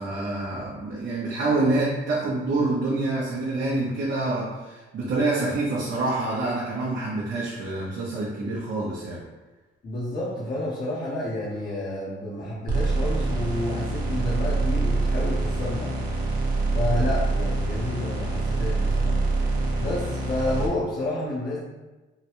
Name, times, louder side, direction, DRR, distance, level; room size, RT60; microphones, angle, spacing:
voice 1, 0.0-9.2, right 2 dB, 65° right, -7 dB, 0.8 m, -27 dB
voice 2, 9.8-15.9 16.7-19.2 19.8-21.6, left 1 dB, 50° left, -8 dB, 1.0 m, -30 dB
sound 1, 12.7-20.7, right 2 dB, 45° right, 1.0 m, -25 dB
3.8 x 2.2 x 3.0 m, 1.1 s
cardioid pair, 90°, 20 cm